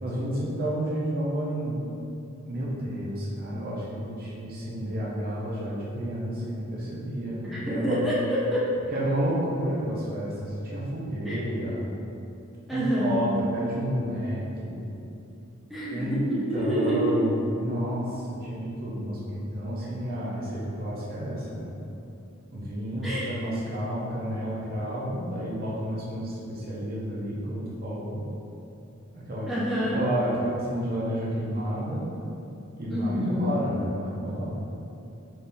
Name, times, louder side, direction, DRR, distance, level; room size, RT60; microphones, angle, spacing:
voice 1, 0.0-1.8 2.5-8.0 8.9-11.9 12.7-14.9 15.9-16.2 16.5-21.7 22.5-28.2 29.1-29.5 29.9-32.1 32.8-34.7, right 1 dB, 45° right, -6 dB, 0.8 m, -31 dB
voice 2, 7.4-8.7 11.2-11.4 12.7-13.3 15.7-17.1 23.0-23.3 29.5-30.0 32.9-33.6, equal, ahead, -9 dB, 0.7 m, -27 dB
4.2 x 2.8 x 3.5 m, 2.8 s
head